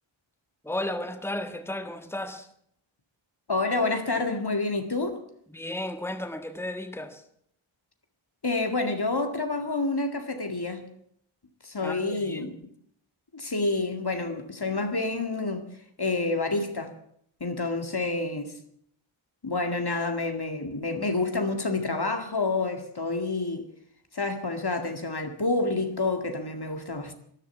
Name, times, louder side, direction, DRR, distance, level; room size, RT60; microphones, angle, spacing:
voice 1, 0.6-2.5 5.5-7.2 11.8-12.5, left 1 dB, 5° left, 1.6 m, -34 dB
voice 2, 3.5-5.2 8.4-10.9 11.6-12.5 13.3-15.7 16.0-16.9 17.4-18.6 19.4-23.7 24.1-27.1, left 3 dB, 50° left, 2.1 m, -28 dB
13.0 x 11.0 x 9.2 m
wide cardioid pair, 50°, 49 cm